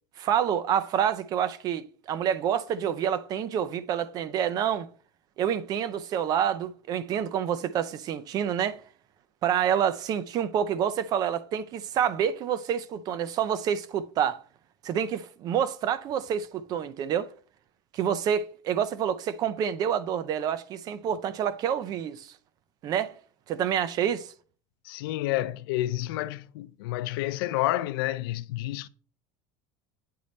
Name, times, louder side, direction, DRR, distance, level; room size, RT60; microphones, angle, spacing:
voice 1, 0.2-4.9 5.4-8.8 9.4-14.4 14.8-17.3 17.9-22.3 22.8-23.2 23.5-24.3, right 9 dB, 35° right, 0.5 m, -28 dB
voice 2, 24.8-28.9, left 15 dB, 85° left, 0.4 m, -29 dB
9.4 x 3.1 x 4.1 m
cardioid pair, 155°, 12 cm